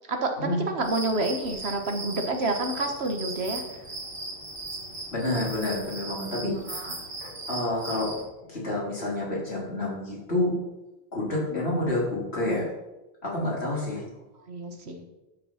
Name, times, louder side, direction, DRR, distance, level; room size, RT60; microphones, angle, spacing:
voice 1, 0.1-3.6 6.7-6.9 11.5-11.6 14.5-15.1, right 2 dB, 85° right, 5 dB, 1.7 m, -29 dB
sound 1, 0.8-8.2, right 2 dB, 60° right, 2.4 m, -38 dB
voice 2, 5.1-8.1 8.5-10.5 11.1-12.7 13.2-14.1, left 2 dB, 80° left, -5 dB, 4.0 m, -29 dB
12.0 x 6.1 x 5.8 m, 1.0 s
omnidirectional pair, 1.1 m